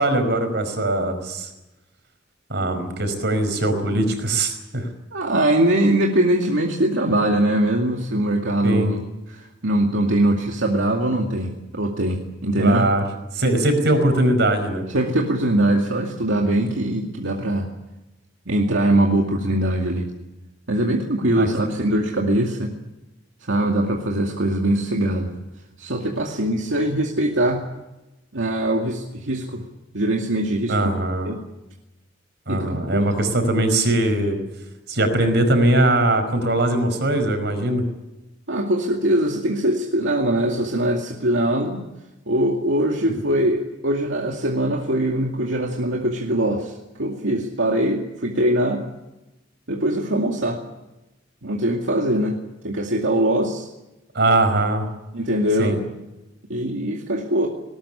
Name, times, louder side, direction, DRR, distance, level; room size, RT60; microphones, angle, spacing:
voice 1, 0.0-1.5 2.5-4.9 8.6-8.9 12.6-13.0 13.3-14.8 21.3-21.7 30.7-31.3 32.5-34.4 34.9-37.8 54.1-54.9 55.6-55.8, right 1 dB, 65° right, 8 dB, 5.1 m, -21 dB
voice 2, 5.1-9.0 9.3-12.9 14.9-17.7 18.5-20.1 20.7-22.7 23.4-25.3 25.8-27.6 28.3-29.6 29.9-30.8 31.2-31.4 32.5-33.1 38.5-41.8 42.3-48.9 49.7-50.6 51.4-52.4 52.6-53.7 55.1-55.8 56.5-57.5, right 1 dB, 85° right, 1 dB, 2.3 m, -22 dB
19.5 x 19.5 x 10.0 m, 0.99 s
head